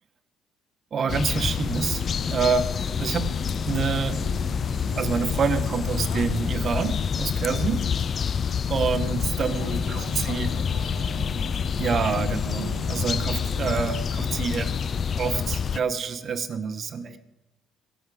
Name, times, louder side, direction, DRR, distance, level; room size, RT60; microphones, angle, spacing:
voice 1, 0.9-2.0 2.3-3.4 3.7-4.3 5.0-7.9 8.7-10.5 11.8-14.7 15.2-17.2, right 6 dB, 50° right, 10 dB, 1.4 m, -27 dB
sound 1, 1.1-15.8, left 7 dB, 45° left, 0.4 m, -27 dB
sound 2, 1.1-16.4, right 10 dB, 85° right, 1.1 m, -44 dB
voice 2, 5.9-6.3 7.9-8.3 9.0-9.2 9.5-11.4 13.4-14.2, left 7 dB, 90° left, 8 dB, 1.5 m, -45 dB
22.0 x 8.4 x 5.1 m, 1.0 s
supercardioid pair, 75°, 0 cm